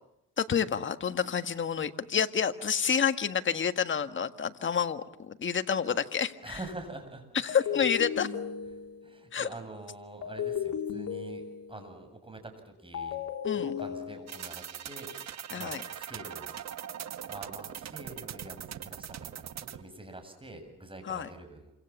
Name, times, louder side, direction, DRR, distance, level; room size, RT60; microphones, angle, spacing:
voice 1, 0.4-6.6 7.4-8.3 9.3-9.5 13.4-13.7 15.5-15.8 21.1-21.3, left 7 dB, 40° left, 9 dB, 1.8 m, -29 dB
sound 1, 6.2-6.5 7.5-9.2 10.2-11.9 12.9-14.6, left 8 dB, 65° left, 3.9 m, -35 dB
voice 2, 6.4-7.8 8.7-13.2 13.5-16.5 17.2-21.7, right 2 dB, 15° right, 7 dB, 7.9 m, -46 dB
sound 2, 14.3-19.8, right 9 dB, 60° right, 1.5 m, -41 dB
28.0 x 26.0 x 7.3 m, 0.81 s
cardioid pair, 90°, 30 cm